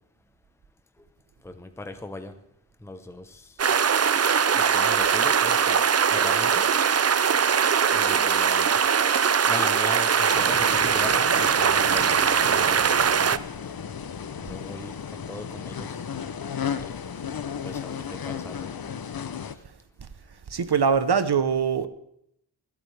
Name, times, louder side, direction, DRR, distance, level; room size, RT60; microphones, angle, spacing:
voice 1, 1.4-2.4 2.8-3.5 4.6-5.8 6.1-6.7 7.9-8.8 9.5-12.1 12.5-12.9 13.3-13.4 14.4-16.1 16.5-16.8 17.6-18.7, left 2 dB, 5° left, 0.8 m, -38 dB
sound 1, 3.6-13.4, right 7 dB, 35° right, 0.4 m, -21 dB
sound 2, 10.3-19.6, left 7 dB, 50° left, 0.7 m, -35 dB
voice 2, 20.5-21.9, right 6 dB, 55° right, 1.0 m, -22 dB
26.0 x 8.8 x 3.4 m
wide cardioid pair, 110°, 47 cm